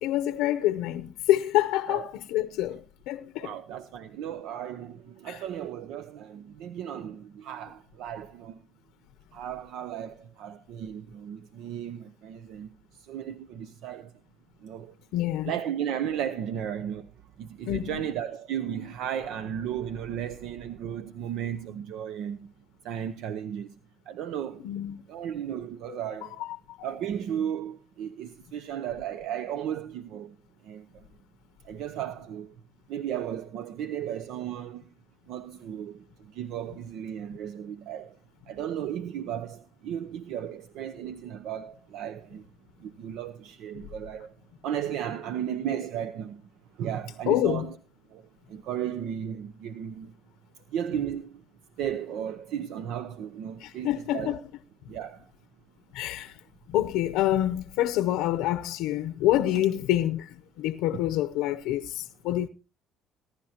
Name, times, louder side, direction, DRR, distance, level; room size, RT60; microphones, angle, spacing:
voice 1, 0.0-3.6 5.3-5.4 15.1-15.5 17.6-18.1 24.6-25.0 25.9-26.9 43.7-43.9 47.3-47.7 53.6-54.4 55.9-56.4 56.7-62.5, left 13 dB, 85° left, 0.6 m, -27 dB
voice 2, 3.4-8.6 9.3-14.1 14.6-15.0 15.4-17.1 17.4-22.5 22.8-23.7 24.1-24.6 25.1-26.4 26.8-30.4 30.6-31.1 31.6-32.5 32.9-34.9 35.3-38.2 38.5-42.4 42.8-44.3 44.6-46.5 46.8-47.8 48.1-48.2 48.5-50.1 50.7-51.4 51.8-54.4 54.9-55.3, right 9 dB, 75° right, 0.7 m, -35 dB
20.5 x 11.5 x 2.9 m
cardioid pair, 95°, 0 cm